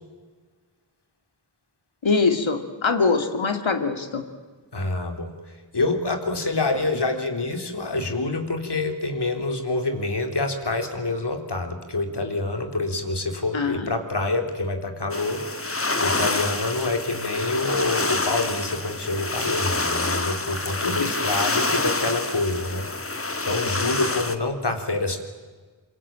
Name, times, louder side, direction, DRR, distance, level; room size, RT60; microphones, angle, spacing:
voice 1, 2.0-4.2 13.5-13.9 20.8-21.1, left 4 dB, 80° left, 7 dB, 2.6 m, -23 dB
voice 2, 4.7-5.3 5.7-15.7 16.0-22.9 23.2-25.2, left 2 dB, 60° left, 5 dB, 3.8 m, -27 dB
sound 1, 15.1-24.4, left 3 dB, 30° left, 1.8 m, -27 dB
26.0 x 24.0 x 8.9 m, 1.4 s
wide cardioid pair, 50°, 46 cm